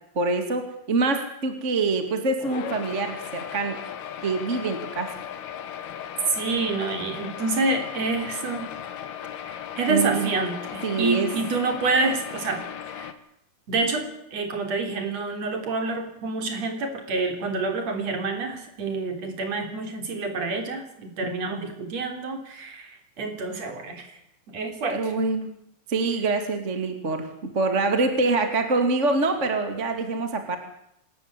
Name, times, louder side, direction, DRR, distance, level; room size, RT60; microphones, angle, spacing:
voice 1, 0.2-3.8 4.2-5.1 9.9-10.3 10.8-11.3 21.2-21.3 24.9-25.5 25.9-30.6, right 3 dB, 25° right, 6 dB, 1.8 m, -25 dB
sound 1, 2.4-13.1, left 9 dB, 90° left, 3.5 m, -37 dB
voice 2, 6.4-8.7 9.4-12.6 13.0-13.1 13.7-22.9 23.2-24.1 24.5-25.0, right 3 dB, 45° right, 5 dB, 4.6 m, -28 dB
26.5 x 13.5 x 9.8 m, 0.78 s
omnidirectional pair, 4.3 m